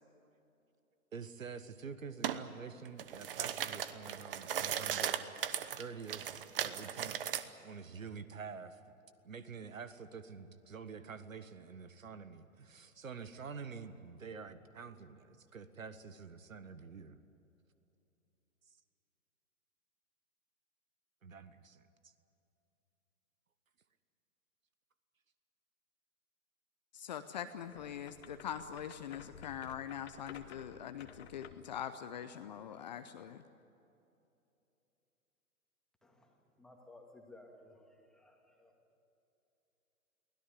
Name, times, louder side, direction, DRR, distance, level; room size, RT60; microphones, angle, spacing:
voice 1, 1.1-5.5 5.8-8.8 9.2-17.2 21.2-22.1, right 5 dB, 65° right, 13 dB, 1.5 m, -48 dB
sound 1, 2.2-2.4 2.9-7.4, right 9 dB, 40° right, 1.1 m, -37 dB
voice 2, 26.9-33.4, left 9 dB, 30° left, 10 dB, 0.7 m, -43 dB
sound 2, 27.6-31.7, left 8 dB, 45° left, 1.5 m, -55 dB
voice 3, 36.0-38.7, left 2 dB, ahead, 1 dB, 2.2 m, -58 dB
23.5 x 17.0 x 9.8 m, 2.8 s
figure-of-eight pair, 125°, 43 cm